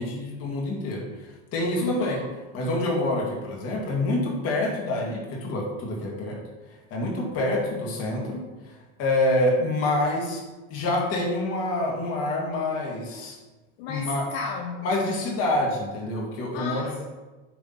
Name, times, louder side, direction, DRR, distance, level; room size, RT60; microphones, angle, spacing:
voice 1, 0.0-2.2 2.5-6.4 6.9-10.4 10.7-13.4 13.9-14.2 14.8-17.0, left 1 dB, 45° left, -1 dB, 2.2 m, -27 dB
voice 2, 1.8-2.3 13.8-15.0 16.5-17.0, left 5 dB, 65° left, 3 dB, 0.9 m, -33 dB
8.3 x 3.6 x 5.8 m, 1.2 s
supercardioid pair, 145°, 35 cm